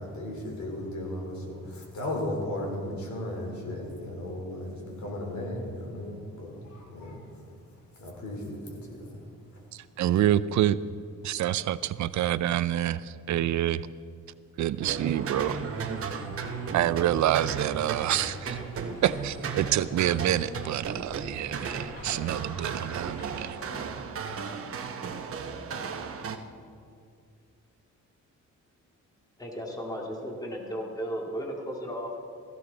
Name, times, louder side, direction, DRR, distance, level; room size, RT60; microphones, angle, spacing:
voice 1, 0.0-7.4 7.7-9.6, left 1 dB, 65° left, 0 dB, 3.6 m, -36 dB
voice 2, 9.7-10.8 11.2-13.9 14.6-15.6 16.7-18.6 19.0-23.6, right 12 dB, 65° right, 16 dB, 0.4 m, -27 dB
sound 1, 14.8-26.4, right 6 dB, 45° right, 0.9 m, -35 dB
sound 2, 15.1-23.9, equal, 45° left, 4.6 m, -45 dB
voice 3, 29.4-32.2, equal, 10° left, -1 dB, 2.1 m, -35 dB
16.0 x 15.0 x 4.0 m, 2.3 s
cardioid pair, 140°, 31 cm